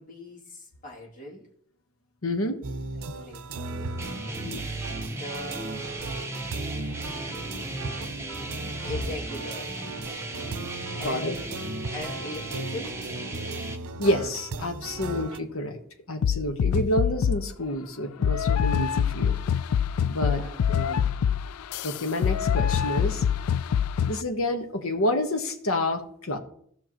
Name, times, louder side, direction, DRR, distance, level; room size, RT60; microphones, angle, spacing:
voice 1, 0.0-1.5 3.1-4.0 4.4-4.6 4.9-6.2 7.1-9.7 11.0-11.5 11.9-13.1 15.4-15.5 16.4-16.7 20.2-20.6, left 1 dB, 40° left, -4 dB, 2.8 m, -41 dB
voice 2, 2.2-2.6 4.4-4.6 11.0-11.4 14.0-15.8 16.1-19.4 20.0-21.1 21.8-23.2 24.0-26.4, left 1 dB, 75° left, 5 dB, 1.3 m, -29 dB
sound 1, 2.6-15.4, right 3 dB, 85° right, 0.7 m, -37 dB
sound 2, 4.0-13.8, right 2 dB, 10° right, 0.9 m, -36 dB
sound 3, 16.2-17.5 18.2-24.2, left 8 dB, 90° left, 0.3 m, -25 dB
16.5 x 5.9 x 3.0 m, 0.65 s
head